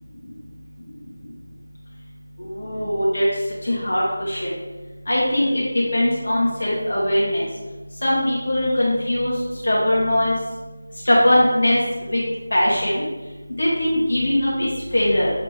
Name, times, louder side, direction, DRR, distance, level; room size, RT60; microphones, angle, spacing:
voice 1, 2.4-3.3 3.6-4.5 5.1-5.6 5.9-7.4 8.0-9.3 9.6-10.3 11.1-11.8 12.1-12.2 12.5-13.0 13.6-15.3, left 1 dB, 60° left, -7 dB, 2.1 m, -20 dB
7.9 x 4.1 x 3.5 m, 1.2 s
figure-of-eight pair, 165°, 0 cm